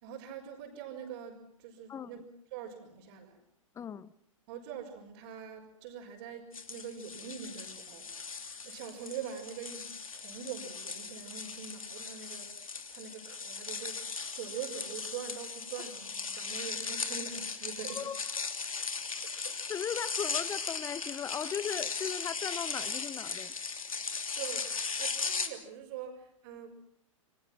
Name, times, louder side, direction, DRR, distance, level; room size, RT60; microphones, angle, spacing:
voice 1, 0.0-2.2 2.5-3.4 4.5-12.5 12.9-18.0 19.2-19.6 24.4-26.7, right 8 dB, 50° right, 5.5 m, -44 dB
voice 2, 3.7-4.1 17.9-18.2 19.7-23.5, left 8 dB, 15° left, 0.9 m, -37 dB
sound 1, 6.5-25.5, left 5 dB, 80° left, 2.9 m, -38 dB
29.0 x 23.5 x 6.1 m
figure-of-eight pair, 110°, 17 cm